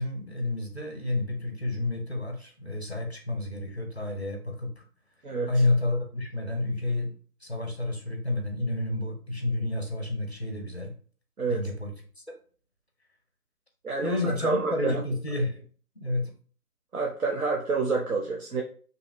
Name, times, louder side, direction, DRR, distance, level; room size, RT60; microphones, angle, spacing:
voice 1, 0.0-4.8 5.5-7.1 7.4-10.9 11.5-11.9 14.0-15.6 16.0-16.3, left 2 dB, 45° left, 3 dB, 0.4 m, -30 dB
voice 2, 13.8-14.9 16.9-18.6, right 4 dB, 70° right, -1 dB, 0.6 m, -28 dB
2.7 x 2.4 x 2.3 m, 0.42 s
figure-of-eight pair, 180°, 46 cm